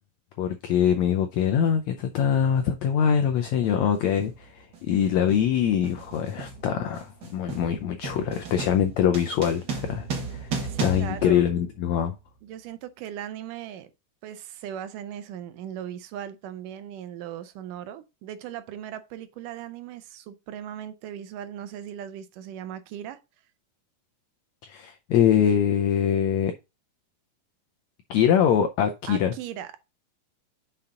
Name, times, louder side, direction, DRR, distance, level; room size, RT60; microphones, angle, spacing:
voice 1, 0.4-10.5 10.8-12.2 24.6-26.5 28.1-29.3, left 9 dB, 80° left, 1.6 m, -23 dB
sound 1, 2.0-2.2 3.1-3.4 3.6-12.2, right 4 dB, 50° right, 1.2 m, -36 dB
voice 2, 10.7-11.5 12.4-13.9 14.2-23.2 29.1-29.8, right 10 dB, 80° right, 2.2 m, -38 dB
5.8 x 5.5 x 3.6 m
omnidirectional pair, 3.9 m